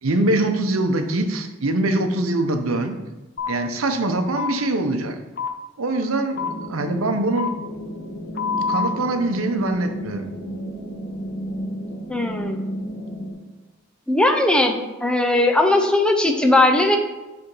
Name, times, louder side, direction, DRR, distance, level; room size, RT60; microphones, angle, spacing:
voice 1, 0.0-3.0 3.5-5.1 5.8-6.4 6.7-7.6 8.7-10.3, right 2 dB, 85° right, 6 dB, 0.7 m, -23 dB
sound 1, 3.4-3.5 4.4-4.5 5.4-5.5 6.4-6.5 7.4-7.5 8.4-8.9, left 5 dB, 50° left, 0.6 m, -25 dB
sound 2, 6.4-13.3, equal, 35° left, 1.5 m, -32 dB
voice 2, 12.1-12.6 14.1-17.0, left 2 dB, 5° left, 5 dB, 0.5 m, -18 dB
6.8 x 3.5 x 5.4 m, 1.1 s
head